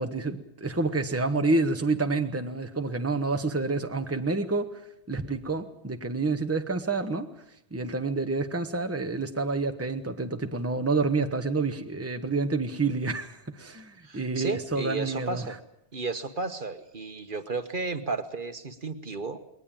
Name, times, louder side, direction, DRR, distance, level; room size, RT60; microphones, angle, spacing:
voice 1, 0.0-4.8 5.1-7.3 7.7-15.5, right 3 dB, 15° right, 6 dB, 1.2 m, -28 dB
voice 2, 14.0-15.6 15.9-19.4, right 3 dB, 55° right, 9 dB, 1.5 m, -33 dB
21.0 x 19.5 x 8.9 m, 0.75 s
omnidirectional pair, 1.1 m